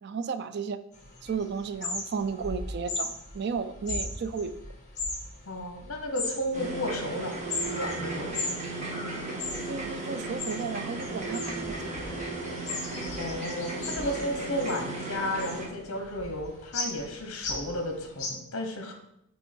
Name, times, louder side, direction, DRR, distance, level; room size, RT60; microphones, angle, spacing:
voice 1, 0.0-0.8 1.2-4.5 9.7-11.8, right 5 dB, 50° right, 11 dB, 0.3 m, -33 dB
sound 1, 0.9-18.3, left 3 dB, 35° left, 1.5 m, -38 dB
voice 2, 5.5-7.4 7.7-8.3 13.2-18.9, left 1 dB, 65° left, 4 dB, 1.0 m, -33 dB
sound 2, 6.5-15.7, right 2 dB, 35° right, 1.3 m, -35 dB
5.4 x 4.6 x 4.4 m, 0.79 s
head